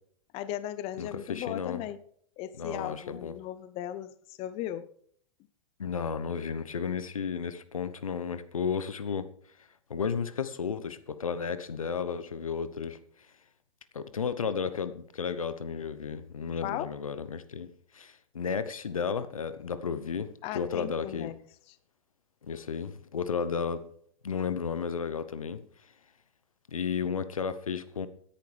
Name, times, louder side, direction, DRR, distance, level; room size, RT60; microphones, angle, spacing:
voice 1, 0.3-2.0 2.4-4.9 16.6-16.9 20.4-21.3, left 12 dB, 35° left, 0.7 m, -37 dB
voice 2, 1.0-1.8 2.6-3.4 5.8-9.3 9.9-13.0 13.9-17.7 17.9-21.3 22.4-23.8 24.2-25.6 26.7-28.1, left 6 dB, 85° left, 0.9 m, -33 dB
17.5 x 10.5 x 3.3 m
hypercardioid pair, 105°, 17 cm